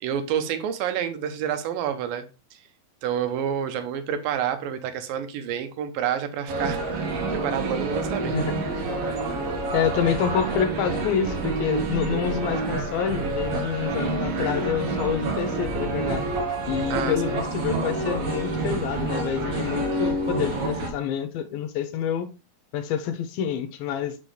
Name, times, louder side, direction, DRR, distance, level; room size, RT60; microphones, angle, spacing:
voice 1, 0.0-2.3 3.0-6.8 7.3-8.4 16.9-17.4, right 9 dB, 80° right, 2.5 m, -28 dB
sound 1, 6.5-20.9, right 3 dB, 65° right, 1.5 m, -28 dB
voice 2, 8.3-8.6 9.7-16.2 16.7-22.3 22.7-24.2, left 8 dB, 80° left, 2.6 m, -27 dB
6.2 x 5.9 x 3.2 m
omnidirectional pair, 4.2 m